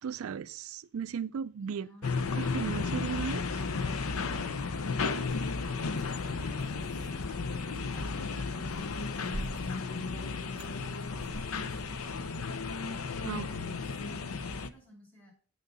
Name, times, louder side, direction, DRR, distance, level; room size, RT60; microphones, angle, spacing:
voice 1, 0.0-1.9 2.3-3.6 13.1-13.8, right 7 dB, 80° right, 0.4 m, -36 dB
voice 2, 1.6-2.3 5.0-5.6 6.0-13.0 13.3-15.3, right 2 dB, 10° left, 5.4 m, -54 dB
sound 1, 2.0-14.7, left 4 dB, 90° left, 0.7 m, -34 dB
sound 2, 5.2-12.0, equal, 50° right, 2.5 m, -47 dB
8.2 x 6.3 x 6.7 m
head